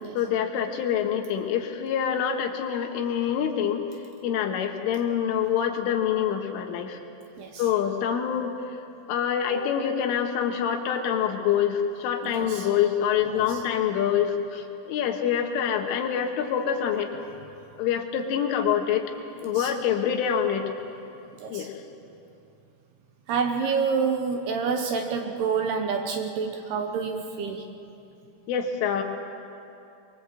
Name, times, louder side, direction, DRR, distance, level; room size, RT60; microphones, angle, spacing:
voice 1, 0.2-3.8 4.2-7.0 7.6-8.5 9.1-17.1 17.8-19.1 19.4-20.7 21.5-21.8 28.5-29.0, left 8 dB, 85° left, 4 dB, 4.0 m, -26 dB
voice 2, 12.2-12.7 13.3-13.6 19.4-19.7 21.4-21.7 23.3-27.7, right 5 dB, 70° right, 4 dB, 2.7 m, -28 dB
24.0 x 22.5 x 8.0 m, 2.7 s
omnidirectional pair, 5.6 m